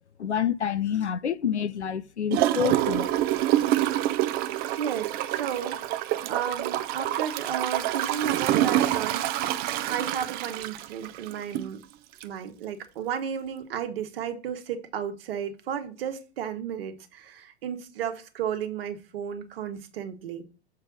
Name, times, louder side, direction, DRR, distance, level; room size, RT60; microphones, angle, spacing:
voice 1, 0.2-3.2, left 8 dB, 90° left, 0.5 m, -28 dB
Gurgling / Toilet flush, 2.3-11.7 12.2-12.3, right 13 dB, 30° right, 0.6 m, -27 dB
voice 2, 4.4-5.8 6.3-9.5 9.8-11.8 12.2-20.4, right 8 dB, 60° right, 1.4 m, -33 dB
6.7 x 3.3 x 6.1 m
figure-of-eight pair, 95°, 33 cm